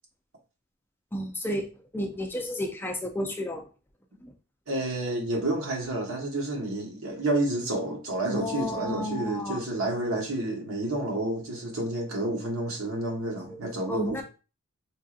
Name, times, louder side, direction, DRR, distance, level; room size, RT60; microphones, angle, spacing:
voice 1, 1.1-1.7 1.9-3.6 4.2-4.3 8.3-9.6 13.5-13.6 13.9-14.2, left 1 dB, 10° left, 0.5 m, -32 dB
voice 2, 4.7-14.2, right 1 dB, 70° right, 1.3 m, -30 dB
4.5 x 2.7 x 2.4 m
head